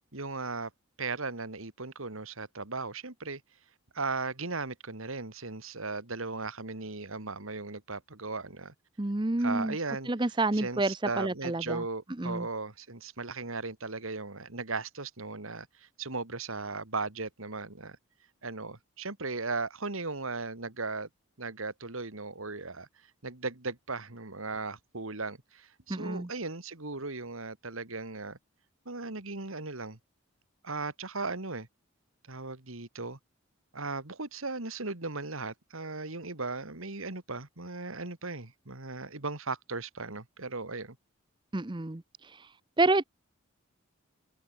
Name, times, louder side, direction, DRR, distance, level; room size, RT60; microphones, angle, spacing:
voice 1, 0.1-0.7 1.0-3.4 3.9-8.7 9.4-10.1 10.5-18.0 18.4-21.1 21.4-22.9 23.2-28.4 28.9-30.0 30.6-31.7 32.3-33.2 33.7-41.0, right 3 dB, 70° right, 2.4 m, -37 dB
voice 2, 9.0-9.7 10.1-11.8 12.2-12.5 25.9-26.3 41.5-42.5 42.8-43.0, right 2 dB, 20° right, 0.7 m, -29 dB
head